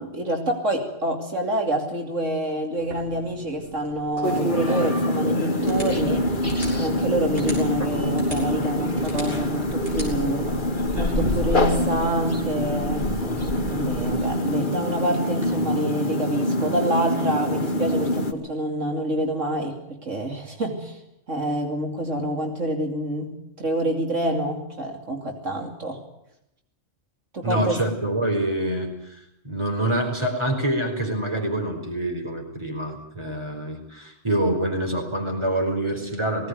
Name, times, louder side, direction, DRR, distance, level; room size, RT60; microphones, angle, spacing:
voice 1, 0.0-10.6 10.9-13.1 13.7-21.0 21.3-26.0 27.3-27.8, right 1 dB, 80° right, 2 dB, 3.1 m, -27 dB
sound 1, 2.8-15.5, right 2 dB, 50° right, 7.3 m, -37 dB
sound 2, 4.2-18.3, left 1 dB, 40° left, 2.3 m, -25 dB
sound 3, 5.9-14.4, left 2 dB, 10° left, 2.5 m, -34 dB
voice 2, 27.4-36.5, right 1 dB, 20° right, 3 dB, 5.0 m, -26 dB
19.5 x 17.5 x 9.5 m, 0.81 s
omnidirectional pair, 1.3 m